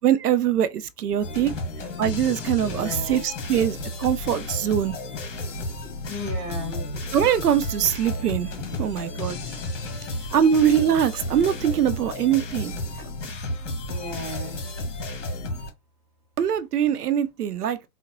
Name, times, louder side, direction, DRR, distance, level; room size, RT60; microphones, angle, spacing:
voice 1, 0.0-1.5 2.0-4.9 7.1-8.5 8.8-9.4 10.3-12.7 16.4-17.9, right 9 dB, 75° right, 0.6 m, -22 dB
sound 1, 1.2-15.7, left 1 dB, 50° left, 1.5 m, -32 dB
voice 2, 2.6-3.3 6.1-6.9 13.9-14.6, left 2 dB, 10° right, 0.7 m, -34 dB
3.9 x 2.1 x 3.0 m
hypercardioid pair, 145°, 47 cm